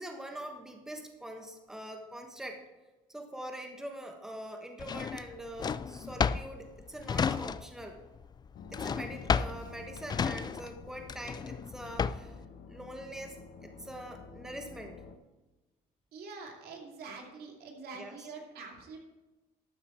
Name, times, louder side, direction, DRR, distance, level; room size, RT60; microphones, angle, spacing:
voice 1, 0.0-2.6 3.1-8.0 8.7-12.4 12.7-14.9 17.9-18.2, right 1 dB, 5° right, 3 dB, 1.3 m, -43 dB
Drawer open or close, 4.8-12.4, left 6 dB, 25° left, 0.3 m, -32 dB
sound 1, 8.5-15.2, left 5 dB, 70° left, 1.1 m, -50 dB
voice 2, 16.1-19.0, right 4 dB, 65° right, 1 dB, 2.6 m, -45 dB
12.5 x 8.5 x 4.5 m, 1.1 s
cardioid pair, 110°, 17 cm